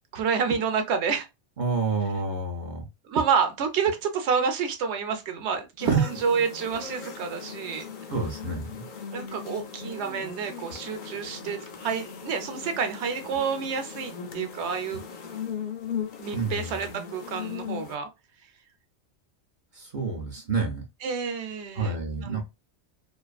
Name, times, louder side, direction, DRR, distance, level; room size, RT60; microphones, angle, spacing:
voice 1, 0.1-1.3 3.1-7.8 9.1-15.1 16.2-18.1 21.0-22.4, right 6 dB, 70° right, 0.9 m, -28 dB
voice 2, 1.6-2.9 5.8-6.0 8.1-8.9 16.3-16.8 19.7-20.8 21.7-22.4, right 4 dB, 55° right, 0.6 m, -29 dB
sound 1, 5.8-18.0, left 6 dB, 60° left, 0.5 m, -38 dB
2.5 x 2.4 x 2.3 m
omnidirectional pair, 1.2 m